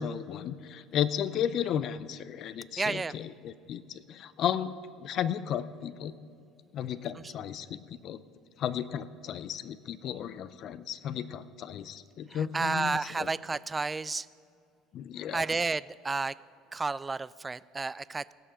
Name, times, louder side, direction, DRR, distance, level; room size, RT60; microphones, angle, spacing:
voice 1, 0.0-3.8 4.1-4.7 5.0-6.1 6.7-8.2 8.6-13.3 14.9-15.4, left 9 dB, 55° left, 15 dB, 0.5 m, -34 dB
voice 2, 2.8-3.2 7.1-7.3 12.3-14.3 15.3-16.3 16.7-18.3, right 3 dB, 20° right, 19 dB, 0.3 m, -31 dB
17.5 x 6.6 x 5.7 m, 2.5 s
hypercardioid pair, 70°, 0 cm